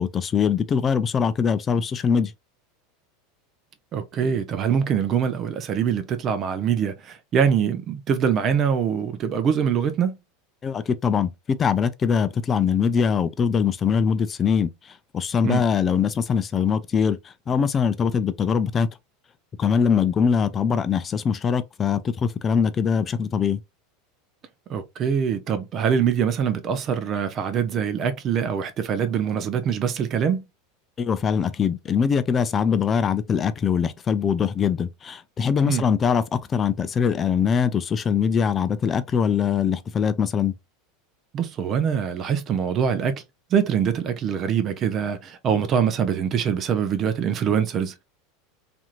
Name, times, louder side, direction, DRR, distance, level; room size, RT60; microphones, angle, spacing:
voice 1, 0.0-2.3 10.6-18.9 19.6-23.6 31.0-40.5, left 6 dB, 30° left, 0.4 m, -22 dB
voice 2, 3.9-10.2 15.4-15.6 24.7-30.4 35.6-35.8 41.3-43.2 43.5-48.0, right 7 dB, 40° right, 0.6 m, -24 dB
2.8 x 2.6 x 2.4 m
hypercardioid pair, 90°, 0 cm